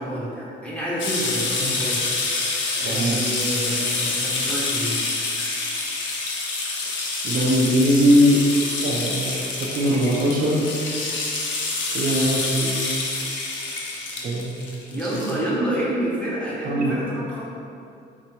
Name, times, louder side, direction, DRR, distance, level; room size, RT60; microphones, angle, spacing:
voice 1, 0.0-2.4 2.7-5.1 14.9-17.5, right 1 dB, 5° left, -7 dB, 1.0 m, -28 dB
sound 1, 1.0-15.3, left 3 dB, 70° left, 0.6 m, -27 dB
voice 2, 2.8-3.2 6.8-6.9 7.2-8.4 8.8-10.7 11.9-13.0 14.2-15.4 16.7-17.0, equal, 45° right, -3 dB, 0.5 m, -21 dB
5.2 x 2.1 x 2.9 m, 2.5 s
cardioid pair, 90°, 20 cm